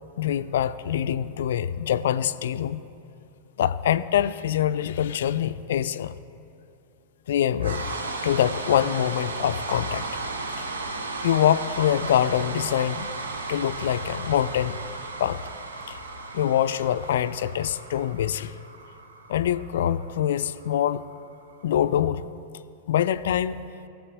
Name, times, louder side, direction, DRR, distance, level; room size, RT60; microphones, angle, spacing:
voice 1, 0.2-2.8 3.6-6.2 7.3-7.9 8.2-10.2 11.2-13.1 13.5-14.8 15.2-15.4 15.9-16.0 16.3-18.6 19.3-21.0 21.6-22.3 22.9-23.6, left 10 dB, 65° left, 13 dB, 0.4 m, -24 dB
sound 1, 7.6-21.7, right 3 dB, 75° right, 0.8 m, -35 dB
20.0 x 7.6 x 2.5 m, 2.9 s
figure-of-eight pair, 95°, 0 cm